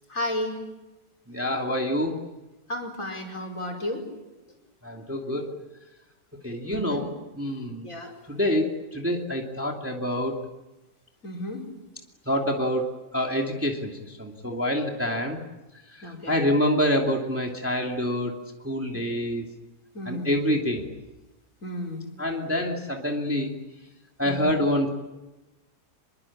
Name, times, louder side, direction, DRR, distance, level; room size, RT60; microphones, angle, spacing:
voice 1, 0.1-0.6 2.7-4.1 5.3-5.4 6.7-7.0 7.8-8.1 11.2-11.6 16.0-16.4 19.9-20.5 21.6-22.1 24.2-24.5, left 1 dB, 50° left, 2 dB, 5.6 m, -33 dB
voice 2, 1.3-2.2 4.8-5.5 6.4-7.9 8.3-10.4 12.3-15.4 15.9-18.3 18.6-19.4 20.1-20.9 22.2-23.5 24.2-24.9, left 1 dB, 10° right, 1 dB, 2.6 m, -27 dB
26.5 x 22.5 x 8.7 m, 1.0 s
omnidirectional pair, 1.8 m